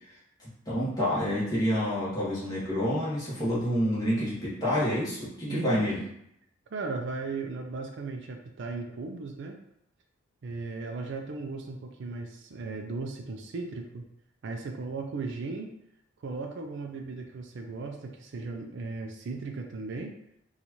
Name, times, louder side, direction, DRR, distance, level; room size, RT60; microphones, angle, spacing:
voice 1, 0.4-6.0, equal, 20° left, -9 dB, 1.1 m, -28 dB
voice 2, 5.5-5.9 6.7-9.6 10.4-14.1 14.4-15.7 16.2-20.1, right 3 dB, 60° right, 3 dB, 0.4 m, -36 dB
4.1 x 2.4 x 2.9 m, 0.77 s
head